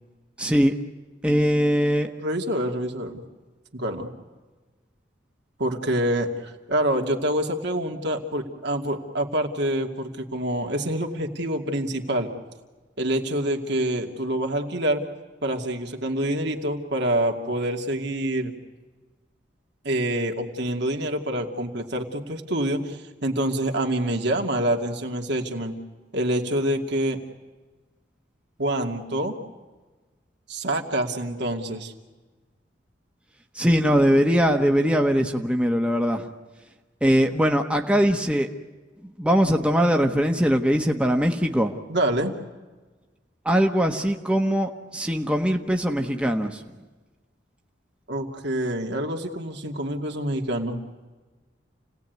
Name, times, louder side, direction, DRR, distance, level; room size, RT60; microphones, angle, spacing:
voice 1, 0.4-0.7 1.2-2.1 33.5-36.3 37.0-38.5 39.2-41.7 43.4-46.6, equal, 5° right, 3 dB, 1.3 m, -21 dB
voice 2, 2.2-3.2 3.7-4.1 5.6-12.3 13.0-15.0 15.4-18.5 19.8-25.8 26.1-27.2 28.6-29.4 30.5-31.9 41.9-42.4 48.1-50.8, right 1 dB, 65° right, 3 dB, 2.6 m, -26 dB
29.0 x 18.0 x 9.5 m, 1.3 s
head